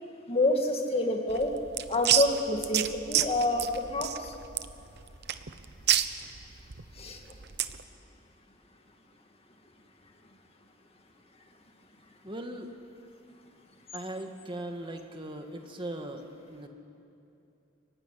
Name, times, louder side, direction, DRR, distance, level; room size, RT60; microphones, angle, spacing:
voice 1, 0.3-1.5 1.9-4.3 7.0-7.2, left 2 dB, 30° left, 3 dB, 2.2 m, -27 dB
sound 1, 1.3-7.8, right 11 dB, 60° right, 0.9 m, -30 dB
voice 2, 12.2-12.7 13.9-16.7, right 1 dB, 25° right, 4 dB, 1.7 m, -39 dB
28.5 x 16.0 x 10.0 m, 2.7 s
head